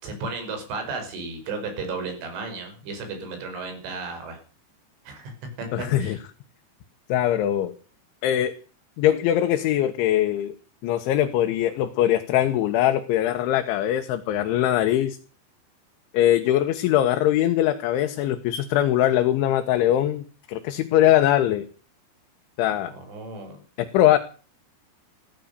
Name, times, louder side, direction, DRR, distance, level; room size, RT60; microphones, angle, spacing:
voice 1, 0.0-4.4 5.1-5.3 5.6-6.2 22.9-23.6, right 3 dB, 80° right, 6 dB, 7.6 m, -34 dB
voice 2, 5.7-6.2 7.1-7.7 8.2-8.5 9.0-10.5 10.8-15.2 16.1-21.7 22.6-22.9 23.8-24.2, left 12 dB, 75° left, 6 dB, 3.6 m, -21 dB
16.5 x 13.0 x 6.8 m, 0.38 s
omnidirectional pair, 5.5 m